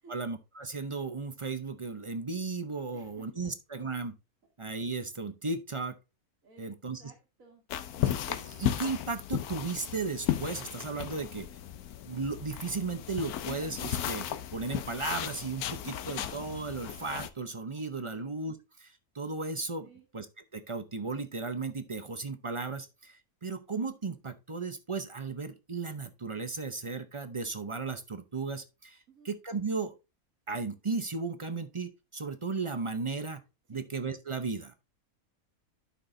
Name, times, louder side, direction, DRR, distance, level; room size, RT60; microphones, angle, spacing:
voice 1, 0.1-4.1 4.6-5.9 6.6-7.0 8.0-11.5 12.1-14.3 14.5-19.9 20.1-20.3 20.5-29.0 29.2-29.9 30.5-33.4 33.7-34.7, right 4 dB, 35° right, 9 dB, 0.5 m, -35 dB
voice 2, 2.9-3.3 6.4-6.7 7.0-7.6 16.0-16.1 18.1-18.3 19.8-20.1 29.1-29.3 33.7-33.8, right 4 dB, 65° right, -2 dB, 2.3 m, -56 dB
sound 1, 7.7-17.3, left 11 dB, 80° left, 1.2 m, -35 dB
11.5 x 6.0 x 2.7 m, 0.27 s
omnidirectional pair, 1.6 m